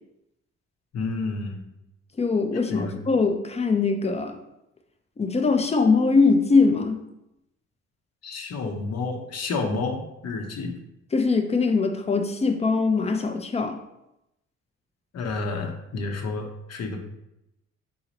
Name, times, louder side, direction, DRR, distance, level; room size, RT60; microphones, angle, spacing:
voice 1, 0.9-1.6 2.7-2.9 8.2-10.7 15.1-17.0, left 3 dB, 55° left, 3 dB, 0.9 m, -30 dB
voice 2, 2.2-4.4 5.2-7.0 11.1-13.8, left 4 dB, 20° left, 5 dB, 0.6 m, -22 dB
4.0 x 3.9 x 3.0 m, 0.86 s
cardioid pair, 90°, 30 cm